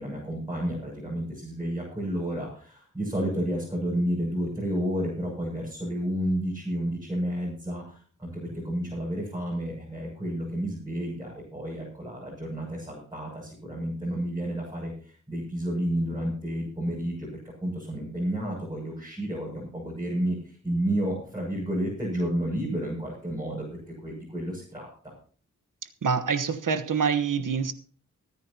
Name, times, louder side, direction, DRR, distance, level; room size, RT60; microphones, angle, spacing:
voice 1, 0.0-17.3 17.6-25.1, right 1 dB, 10° right, 7.1 m, -31 dB
voice 2, 26.0-27.7, right 6 dB, 75° right, 1.2 m, -26 dB
25.0 x 9.6 x 2.9 m
wide cardioid pair, 90°, 32 cm